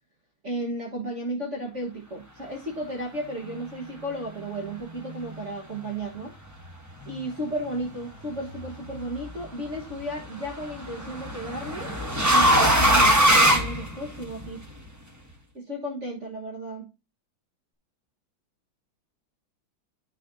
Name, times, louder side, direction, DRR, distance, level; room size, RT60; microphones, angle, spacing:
voice 1, 0.4-6.3 7.0-11.9 12.3-14.6 15.5-16.9, right 1 dB, 40° right, -1 dB, 1.6 m, -34 dB
sound 1, 8.5-9.0 10.4-14.4, equal, 10° right, 0.8 m, -21 dB
9.8 x 6.2 x 2.7 m, 0.27 s
omnidirectional pair, 2.2 m